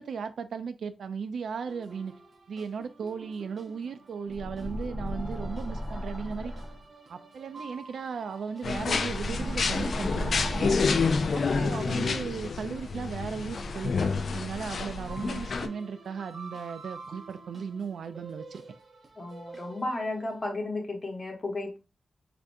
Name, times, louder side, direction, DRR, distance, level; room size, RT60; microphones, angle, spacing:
voice 1, 0.0-2.1 2.5-6.5 7.1-10.8 11.3-18.6, right 6 dB, 85° right, 0.4 m, -36 dB
sound 1, 1.7-20.4, right 3 dB, 50° right, 0.8 m, -49 dB
sound 2, 4.3-6.8 8.8-11.3, equal, 5° right, 1.0 m, -35 dB
sound 3, 8.6-15.7, left 4 dB, 65° left, 0.3 m, -29 dB
voice 2, 11.5-12.0 19.2-21.8, left 2 dB, 35° left, 1.1 m, -34 dB
4.5 x 2.5 x 2.6 m
wide cardioid pair, 115°, 0 cm